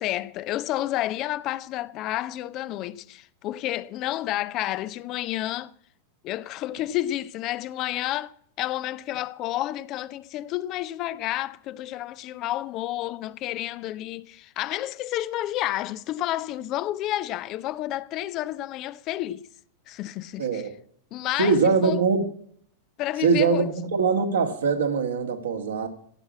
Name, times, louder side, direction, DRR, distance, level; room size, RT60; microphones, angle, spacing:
voice 1, 0.0-5.7 6.2-19.5 19.9-20.6 21.1-22.0 23.0-23.7, left 14 dB, 35° left, 0.5 m, -30 dB
voice 2, 20.4-20.7 21.4-22.2 23.2-25.9, right 5 dB, 65° right, 1.8 m, -22 dB
16.0 x 6.1 x 8.4 m
figure-of-eight pair, 90°, 0 cm